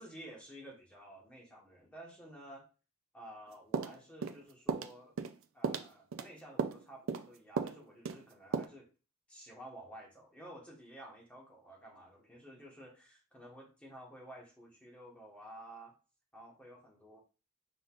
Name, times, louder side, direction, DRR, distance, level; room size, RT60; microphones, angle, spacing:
voice 1, 0.0-2.6 3.1-5.1 5.5-8.9 9.3-15.9 16.3-17.2, right 1 dB, 5° left, -3 dB, 1.4 m, -52 dB
sound 1, 3.7-4.4 4.7-4.9 5.2-5.4 5.6-6.3 6.6-6.8 7.1-7.3 7.6-7.8 8.0-8.2 8.5-8.6, right 5 dB, 85° right, 0.4 m, -35 dB
5.2 x 3.6 x 2.5 m, 0.34 s
head